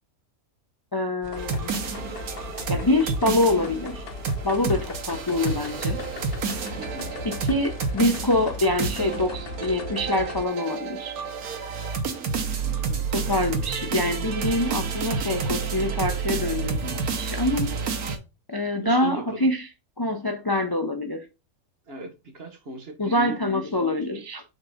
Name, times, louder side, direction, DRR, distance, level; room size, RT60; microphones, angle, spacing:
voice 1, 0.9-1.7 2.7-4.0 4.4-6.0 7.2-11.2 13.1-17.8 18.5-19.7 20.0-21.3 23.0-24.4, left 1 dB, 30° left, 0.4 m, -25 dB
sound 1, 1.2-10.5, left 3 dB, 50° left, 1.0 m, -38 dB
sound 2, 1.4-18.2, right 5 dB, 90° right, 1.5 m, -30 dB
voice 2, 6.8-7.1 12.8-13.2 18.6-19.5 21.9-24.2, right 2 dB, 45° right, 1.3 m, -38 dB
6.3 x 3.8 x 4.9 m
omnidirectional pair, 1.5 m